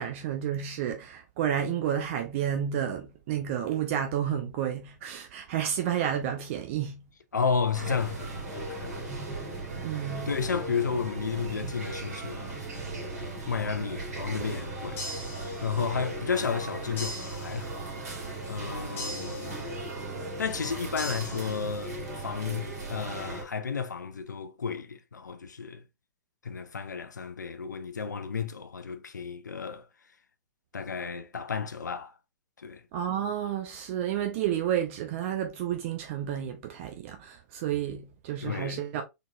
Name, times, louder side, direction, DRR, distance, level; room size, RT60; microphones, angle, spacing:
voice 1, 0.0-7.0 9.8-10.3 32.9-39.0, right 9 dB, 45° right, 0.7 m, -31 dB
voice 2, 7.3-9.1 10.3-12.6 13.5-15.0 15.6-17.8 18.1-19.6 20.4-25.8 26.4-29.9 30.7-32.1 32.6-32.8 38.4-38.8, left 6 dB, 80° left, 0.5 m, -32 dB
sound 1, 7.7-23.4, right 2 dB, 60° right, 2.1 m, -37 dB
sound 2, 15.0-16.0 17.0-18.0 19.0-20.0 21.0-22.0, left 1 dB, 25° left, 1.5 m, -41 dB
3.8 x 3.6 x 2.3 m
figure-of-eight pair, 105°, 10 cm